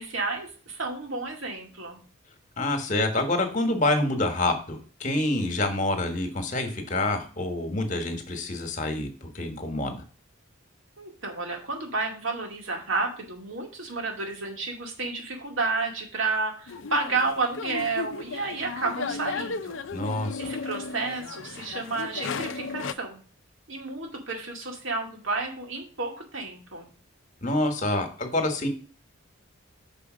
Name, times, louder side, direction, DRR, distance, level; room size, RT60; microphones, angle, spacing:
voice 1, 0.0-2.0 11.0-19.8 20.4-23.2 23.7-26.9, right 3 dB, 75° right, 1 dB, 2.2 m, -31 dB
voice 2, 2.6-10.0 19.9-20.5 27.4-28.7, left 2 dB, 40° left, 6 dB, 1.4 m, -27 dB
sound 1, 16.7-22.9, left 4 dB, 70° left, 0.5 m, -35 dB
5.8 x 5.1 x 6.2 m, 0.39 s
head